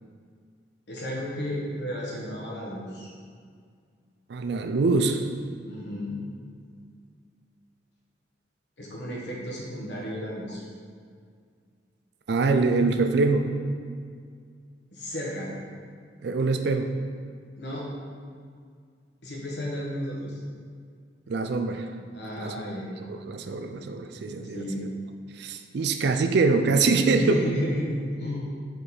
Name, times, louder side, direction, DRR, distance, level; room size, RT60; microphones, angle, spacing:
voice 1, 0.9-3.1 5.7-6.2 8.8-10.6 14.9-15.5 17.6-17.9 19.2-20.4 22.1-22.9 24.4-24.8 27.1-28.4, equal, 65° left, -4 dB, 1.3 m, -33 dB
voice 2, 4.3-5.2 12.3-13.5 16.2-16.9 21.3-21.9 22.4-22.5 23.1-24.9 25.4-27.4, right 3 dB, 65° right, 6 dB, 0.4 m, -24 dB
5.2 x 4.5 x 4.1 m, 2.1 s
head